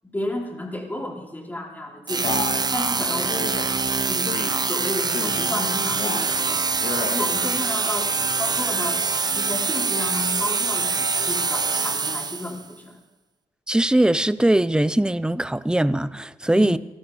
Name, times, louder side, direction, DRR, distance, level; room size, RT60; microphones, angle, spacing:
voice 1, 0.0-2.4 2.7-3.5 4.1-9.0 9.3-13.0 16.5-16.8, left 1 dB, 15° left, -1 dB, 4.4 m, -32 dB
sound 1, 2.1-12.6, right 4 dB, 30° right, 0.9 m, -24 dB
Male speech man speaking, 2.2-2.7 3.3-3.7 4.3-4.6 5.1-5.5 5.9-6.3 6.7-7.2, left 5 dB, 60° left, 2.2 m, -31 dB
voice 2, 13.7-16.8, right 1 dB, 5° right, 16 dB, 0.6 m, -20 dB
19.5 x 13.0 x 5.1 m, 1.1 s
supercardioid pair, 55°, 13 cm